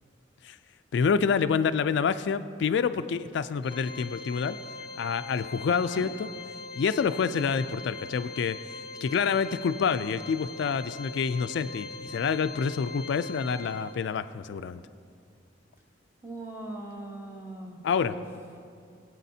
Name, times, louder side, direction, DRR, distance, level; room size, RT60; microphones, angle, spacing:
voice 1, 0.9-4.6 5.0-6.3 6.8-8.6 9.0-14.8 17.8-18.2, left 6 dB, 70° left, 11 dB, 0.3 m, -27 dB
Organ, 3.6-14.3, left 3 dB, 25° left, 0.8 m, -42 dB
voice 2, 5.7-6.1 16.2-18.2, right 1 dB, 15° right, -1 dB, 1.2 m, -40 dB
22.0 x 8.3 x 2.7 m, 2.3 s
head